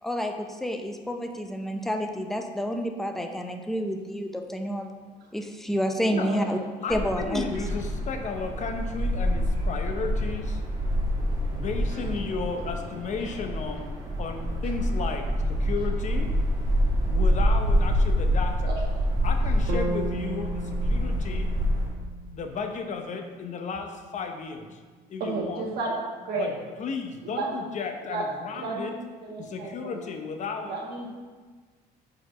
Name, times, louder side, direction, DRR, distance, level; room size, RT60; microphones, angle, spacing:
voice 1, 0.0-4.9 5.3-6.6 6.9-7.6, equal, ahead, 4 dB, 0.5 m, -29 dB
voice 2, 6.3-6.6 11.9-12.0 18.6-18.7 25.2-25.9 26.2-26.5 27.2-27.7 28.0-28.2 28.5-30.0 30.6-31.1, right 3 dB, 70° right, -4 dB, 1.8 m, -32 dB
voice 3, 6.8-10.6 11.5-13.9 14.2-16.3 17.1-18.8 19.2-21.5 22.3-24.8 25.1-25.6 26.4-29.0 29.4-30.8, left 5 dB, 45° left, 5 dB, 0.8 m, -34 dB
sound 1, 6.9-21.9, equal, 20° right, 1.6 m, -26 dB
sound 2, 19.7-23.8, right 2 dB, 85° right, 1.1 m, -36 dB
4.9 x 4.2 x 5.5 m, 1.4 s
cardioid pair, 110°, 17 cm